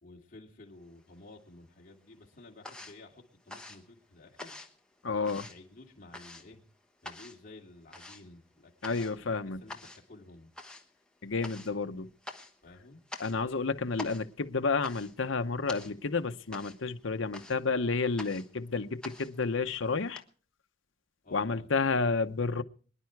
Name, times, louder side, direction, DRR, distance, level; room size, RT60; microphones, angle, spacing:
voice 1, 0.0-4.6 5.0-6.6 7.0-10.5 12.6-13.0 21.2-22.0, left 2 dB, 40° left, 2.9 m, -53 dB
sound 1, 0.8-1.6 1.9-20.2, left 2 dB, 5° left, 1.2 m, -48 dB
voice 2, 5.0-5.5 8.8-9.6 11.2-12.1 13.2-20.2 21.3-22.6, left 4 dB, 70° left, 0.8 m, -31 dB
23.5 x 10.5 x 4.6 m
head